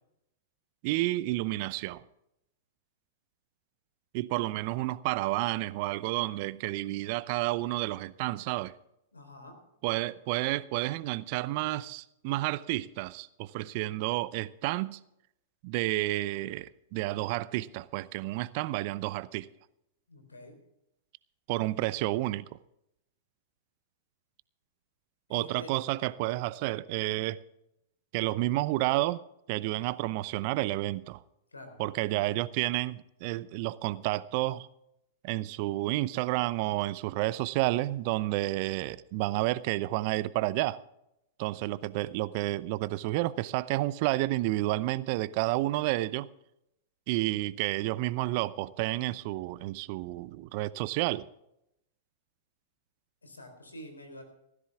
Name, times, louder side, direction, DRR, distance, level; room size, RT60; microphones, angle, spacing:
voice 1, 0.8-2.0 4.1-8.7 9.8-15.0 15.6-19.5 21.5-22.6 25.3-27.4 28.1-31.2 31.8-34.7 35.2-40.8 41.4-46.3 47.1-51.3, right 18 dB, 50° right, 0.6 m, -30 dB
voice 2, 9.1-9.6 20.1-20.6 25.3-25.7 31.5-31.8 41.5-41.8 53.2-54.2, left 1 dB, 90° left, 3.9 m, -47 dB
17.0 x 14.5 x 3.5 m
hypercardioid pair, 105°, 0 cm